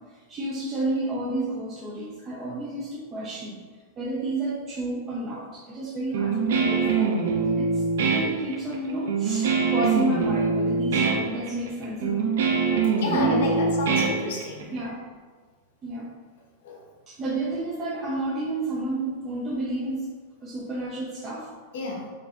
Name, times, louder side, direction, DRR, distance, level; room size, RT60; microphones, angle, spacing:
voice 1, 0.3-3.6 4.0-7.8 8.1-12.4 13.0-13.9 14.7-15.0 15.8-16.1 17.1-20.1 20.4-21.5, right 2 dB, 20° right, -6 dB, 0.5 m, -30 dB
Guitar, 6.1-14.8, right 5 dB, 85° right, 0.6 m, -24 dB
voice 2, 13.0-14.7 16.6-16.8 21.7-22.1, left 3 dB, 70° left, 0 dB, 1.0 m, -30 dB
6.6 x 2.6 x 2.4 m, 1.5 s
supercardioid pair, 165°, 0 cm